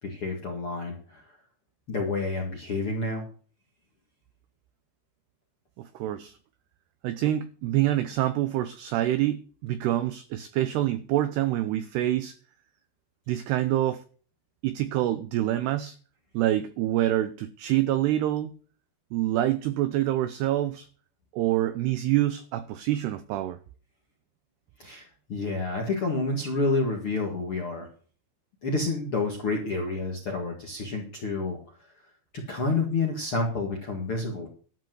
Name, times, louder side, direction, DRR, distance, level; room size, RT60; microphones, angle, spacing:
voice 1, 0.0-1.4 1.9-3.2 24.8-27.9 28.6-31.6 32.3-34.5, left 3 dB, 50° left, 1.6 m, -29 dB
voice 2, 5.8-6.4 7.0-12.4 13.3-14.0 14.6-16.0 16.3-18.5 19.1-20.9 21.3-23.6, right 13 dB, 85° right, 2.3 m, -26 dB
13.0 x 5.2 x 7.7 m
omnidirectional pair, 5.5 m